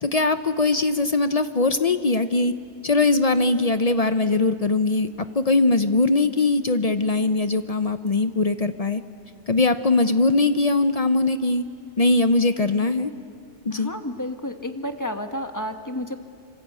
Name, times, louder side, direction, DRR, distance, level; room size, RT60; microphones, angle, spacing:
voice 1, 0.0-2.5 2.8-5.1 5.3-9.0 9.5-11.6 12.0-13.1 13.6-13.9, left 3 dB, 40° left, 10 dB, 0.7 m, -21 dB
voice 2, 13.7-16.2, left 1 dB, 15° left, 6 dB, 1.3 m, -31 dB
26.5 x 25.0 x 8.3 m, 2.2 s
omnidirectional pair, 1.1 m